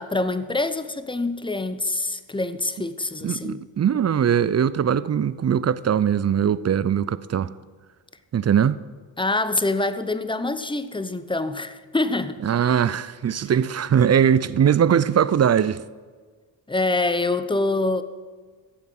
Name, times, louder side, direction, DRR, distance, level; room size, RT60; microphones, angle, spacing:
voice 1, 0.0-3.6 9.2-12.4 16.7-18.0, left 2 dB, 10° left, 0.8 m, -25 dB
voice 2, 3.2-7.5 8.3-8.8 12.4-15.8, right 8 dB, 35° right, 0.5 m, -21 dB
16.0 x 7.1 x 6.0 m
supercardioid pair, 55°, 50 cm